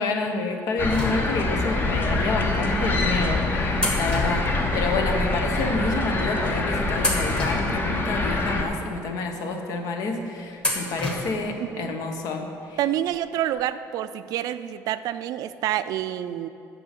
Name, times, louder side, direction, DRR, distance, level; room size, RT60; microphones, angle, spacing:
voice 1, 0.0-12.8, left 3 dB, 65° left, 4 dB, 1.1 m, -28 dB
sound 1, 0.8-8.6, left 2 dB, 30° left, 1.0 m, -25 dB
sound 2, 0.9-1.7 2.6-2.7 3.8-5.2 5.5-5.6 6.3-6.5 7.0-8.3 8.8-8.9 10.6-11.6 11.9-12.0 13.1-13.2 13.5-13.6, left 1 dB, 15° left, 1.4 m, -31 dB
voice 2, 11.6-11.9 12.8-16.5, right 12 dB, 70° right, 12 dB, 0.4 m, -28 dB
8.6 x 6.2 x 7.5 m, 2.7 s
cardioid pair, 145°, 7 cm